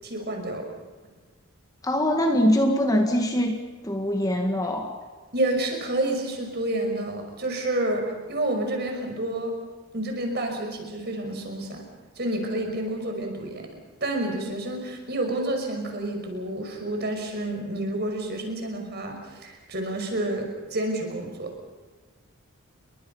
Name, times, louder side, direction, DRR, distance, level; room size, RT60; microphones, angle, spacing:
voice 1, 0.0-0.7 5.3-9.5 9.9-11.8 12.2-13.6 14.0-21.5, right 1 dB, 45° right, 3 dB, 5.7 m, -29 dB
voice 2, 1.8-3.6 3.8-4.9, equal, 15° left, 3 dB, 1.8 m, -23 dB
29.5 x 23.0 x 5.6 m, 1.3 s
head